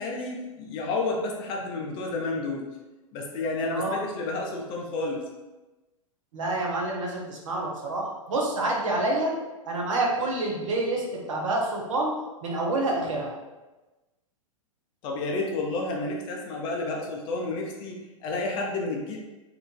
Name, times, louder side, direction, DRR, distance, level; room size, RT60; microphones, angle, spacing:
voice 1, 0.0-2.7 3.1-5.2 15.0-19.2, left 2 dB, 30° left, 0 dB, 0.4 m, -30 dB
voice 2, 6.3-9.4 9.6-12.1 12.4-13.3, right 2 dB, 65° right, -2 dB, 0.8 m, -27 dB
3.0 x 2.4 x 2.2 m, 1.1 s
figure-of-eight pair, 100°, 18 cm